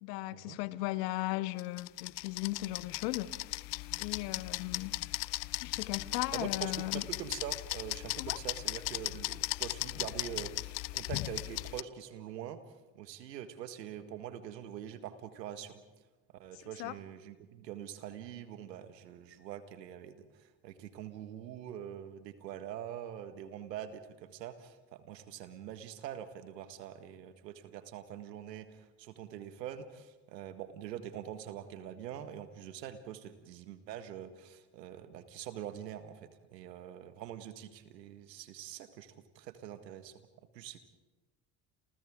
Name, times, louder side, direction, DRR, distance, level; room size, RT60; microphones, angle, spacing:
voice 1, 0.0-3.3 4.0-5.0 5.6-7.0 8.2-8.4 16.8-16.9, left 18 dB, 80° left, 1.0 m, -36 dB
sound 1, 1.6-11.8, left 23 dB, 65° left, 0.7 m, -37 dB
voice 2, 6.3-12.6 12.9-15.8 16.3-40.1 40.5-40.8, right 10 dB, 90° right, 1.8 m, -44 dB
30.0 x 28.0 x 3.7 m
hypercardioid pair, 65°, 48 cm